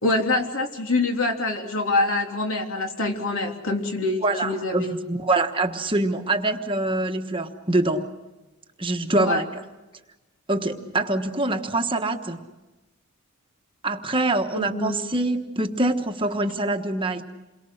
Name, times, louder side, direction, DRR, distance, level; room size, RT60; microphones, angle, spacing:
voice 1, 0.0-5.0 9.2-9.4 14.5-15.0, left 2 dB, 65° left, 2 dB, 3.4 m, -25 dB
voice 2, 4.2-8.0 8.8-9.4 10.5-12.4 13.8-17.2, right 2 dB, 25° right, 5 dB, 1.3 m, -24 dB
28.5 x 23.0 x 6.5 m, 1.1 s
head